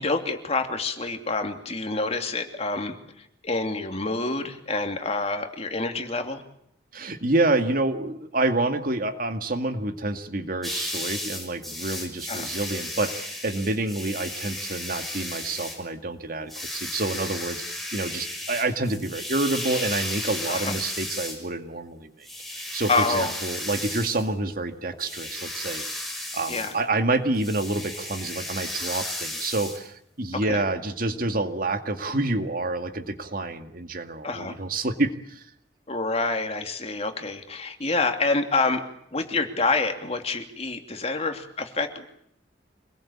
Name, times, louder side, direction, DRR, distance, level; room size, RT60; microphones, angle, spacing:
voice 1, 0.0-3.0 3.4-6.4 12.3-12.5 20.5-20.8 22.9-23.3 26.5-26.8 30.5-30.6 34.2-34.6 35.9-38.8 39.1-42.1, left 3 dB, 35° left, 5 dB, 2.8 m, -27 dB
voice 2, 6.9-26.0 26.3-35.5, right 2 dB, 55° right, 7 dB, 2.2 m, -28 dB
sound 1, 10.6-15.8 16.5-21.4 22.2-24.2 24.9-26.8 27.4-29.8, left 1 dB, ahead, 6.1 m, -34 dB
26.5 x 20.5 x 8.7 m, 0.70 s
head